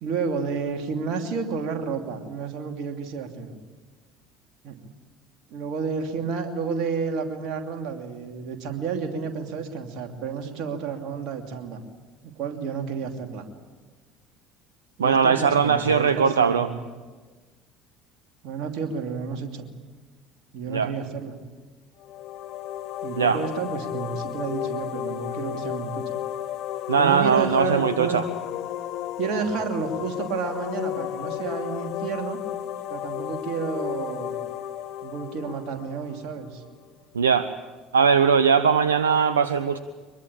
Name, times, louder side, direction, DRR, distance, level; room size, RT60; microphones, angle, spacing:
voice 1, 0.0-3.5 4.6-4.8 5.5-11.8 12.2-13.4 15.0-16.8 18.4-19.7 20.5-21.4 23.0-26.0 27.0-28.2 29.2-32.4 32.9-34.4 35.0-36.6, right 5 dB, 55° right, 4 dB, 2.9 m, -31 dB
voice 2, 15.0-16.7 20.7-20.9 23.2-23.4 26.9-28.2 37.1-37.5 37.9-39.8, right 6 dB, 75° right, 12 dB, 0.7 m, -20 dB
sound 1, 22.0-36.7, left 11 dB, 55° left, 1.1 m, -33 dB
23.5 x 22.0 x 8.6 m, 1.4 s
figure-of-eight pair, 60°, 0 cm